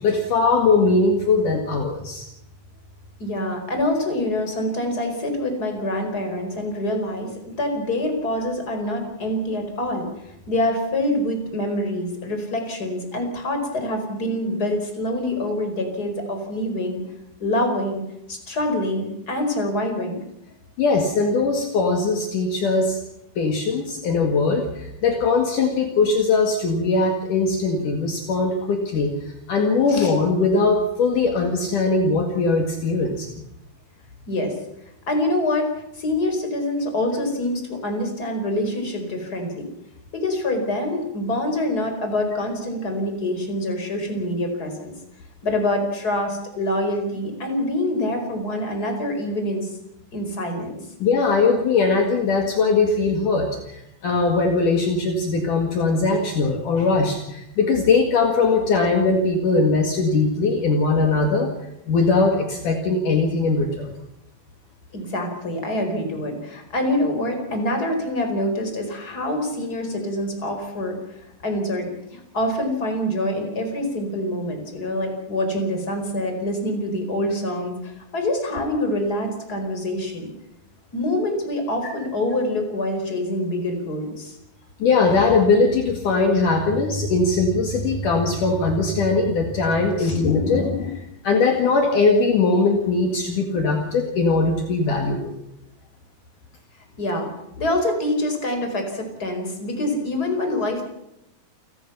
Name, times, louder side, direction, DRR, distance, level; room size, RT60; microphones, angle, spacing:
voice 1, 0.0-2.2 20.8-23.0 23.4-29.1 29.5-33.3 51.0-61.5 61.9-63.9 84.8-95.3, left 3 dB, 60° left, 3 dB, 3.4 m, -20 dB
voice 2, 3.2-7.3 7.6-10.1 10.5-17.0 17.4-18.0 18.3-20.2 29.9-30.1 34.3-34.5 35.1-39.7 40.1-44.9 45.4-49.7 50.1-50.7 64.9-71.0 71.4-80.3 80.9-84.4 90.0-90.2 97.0-97.3 97.6-100.8, left 1 dB, 25° left, 4 dB, 5.1 m, -25 dB
29.0 x 18.0 x 5.7 m, 0.81 s
omnidirectional pair, 4.4 m